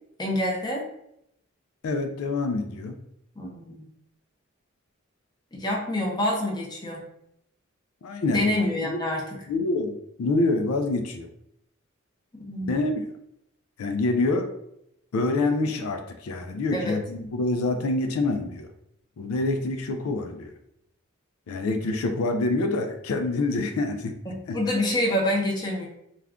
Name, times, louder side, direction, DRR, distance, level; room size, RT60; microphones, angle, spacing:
voice 1, 0.2-0.8 3.4-3.9 5.5-7.0 8.3-9.4 12.5-12.7 16.7-17.0 24.3-25.9, left 1 dB, 20° left, -1 dB, 0.6 m, -27 dB
voice 2, 1.8-3.0 8.0-8.4 8.8-9.0 9.5-11.3 12.7-13.1 13.8-14.5 15.1-18.7 19.2-20.5 21.5-24.2 24.5-24.6, left 2 dB, 85° left, 6 dB, 0.4 m, -26 dB
2.4 x 2.2 x 3.5 m, 0.77 s
head